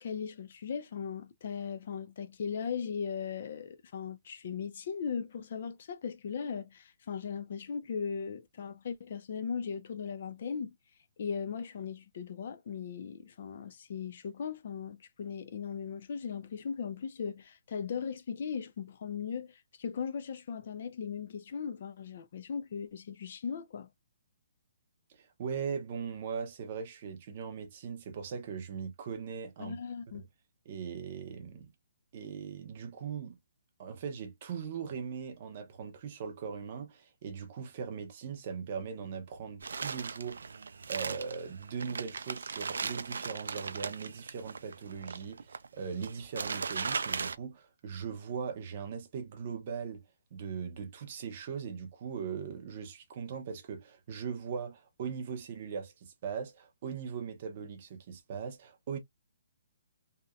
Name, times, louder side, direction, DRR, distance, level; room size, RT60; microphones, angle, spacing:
voice 1, 0.0-10.7 11.2-23.9 29.6-30.3, left 6 dB, 35° left, 0.4 m, -38 dB
voice 2, 25.1-29.8 30.1-30.2 30.7-31.7 32.1-33.4 33.8-40.4 40.9-50.0 50.3-59.0, right 6 dB, 25° right, 0.6 m, -39 dB
sound 1, 39.6-47.4, right 5 dB, 85° right, 0.3 m, -38 dB
2.8 x 2.1 x 2.3 m
hypercardioid pair, 180°, 0 cm